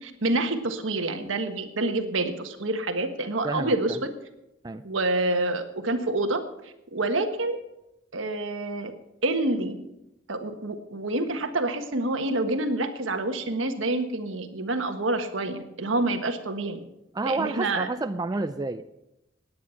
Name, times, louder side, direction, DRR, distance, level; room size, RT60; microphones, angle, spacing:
voice 1, 0.0-4.1 4.8-6.4 6.9-7.6 8.1-8.9 9.2-9.8 10.3-16.8 17.3-17.9, right 2 dB, 75° right, 7 dB, 1.4 m, -27 dB
voice 2, 3.4-4.0 4.6-4.8 17.1-18.8, right 3 dB, 20° right, 9 dB, 0.4 m, -29 dB
17.0 x 9.5 x 5.8 m, 0.91 s
head